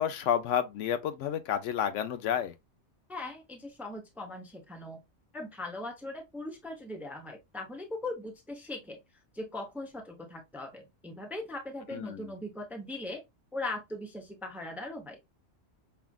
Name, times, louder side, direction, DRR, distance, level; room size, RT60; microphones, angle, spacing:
voice 1, 0.0-2.5 11.9-12.3, left 9 dB, 80° left, 0.9 m, -30 dB
voice 2, 3.1-5.0 5.3-9.0 9.3-13.2 13.5-15.2, left 2 dB, ahead, 0.6 m, -39 dB
5.5 x 2.4 x 2.3 m
omnidirectional pair, 1.2 m